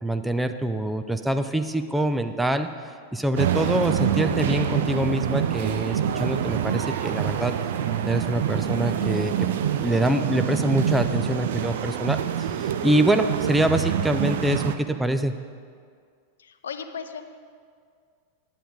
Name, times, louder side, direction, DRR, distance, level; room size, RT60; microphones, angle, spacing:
voice 1, 0.0-2.7 3.1-7.6 8.0-9.4 9.8-15.3, right 1 dB, 5° right, 8 dB, 0.5 m, -25 dB
sound 1, 3.4-14.8, right 9 dB, 55° right, 0.5 m, -26 dB
voice 2, 16.4-17.3, left 6 dB, 65° left, 9 dB, 0.6 m, -36 dB
10.0 x 9.0 x 5.1 m, 2.1 s
figure-of-eight pair, 90°, 0 cm